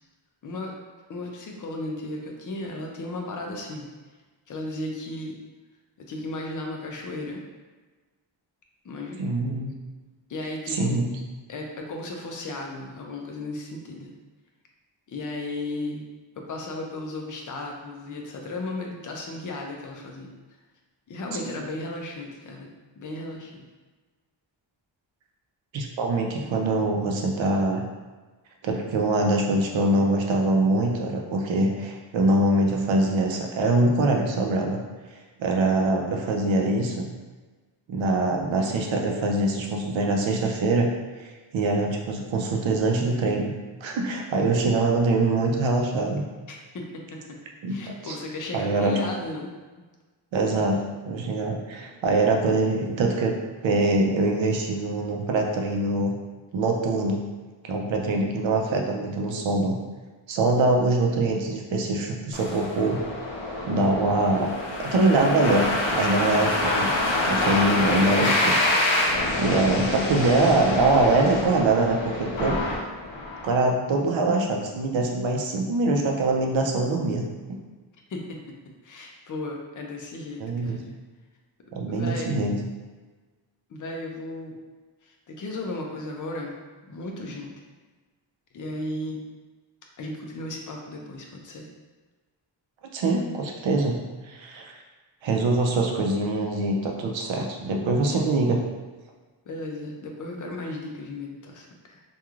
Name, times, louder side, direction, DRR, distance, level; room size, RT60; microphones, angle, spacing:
voice 1, 0.4-0.7 1.1-3.9 4.5-5.4 6.0-7.4 8.8-9.2 10.3-11.1 11.5-14.1 15.1-16.0 16.4-20.3 21.1-23.6 46.5-47.4 47.7-49.5 78.1-78.4 78.8-81.0 81.9-82.3 83.7-84.6 85.0-86.5 86.9-87.6 88.5-89.2 90.0-91.7 99.5-102.0, left 2 dB, 45° left, 1 dB, 0.4 m, -35 dB
voice 2, 9.2-9.7 10.7-11.1 25.7-27.8 28.6-34.8 35.4-37.1 37.9-40.9 41.2-43.5 43.8-46.2 47.6-48.2 48.5-49.0 50.3-53.3 53.6-56.1 56.5-57.2 57.6-59.8 60.3-63.0 63.7-64.5 64.8-66.9 67.2-68.6 69.0-72.6 73.4-77.6 80.4-80.8 81.7-82.6 92.9-94.0 94.2-94.7 95.2-98.6, right 2 dB, 85° right, 1 dB, 0.5 m, -23 dB
sound 1, 62.3-73.5, left 2 dB, 85° left, 0.6 m, -26 dB
3.0 x 2.4 x 2.3 m, 1.3 s
wide cardioid pair, 160°, 45 cm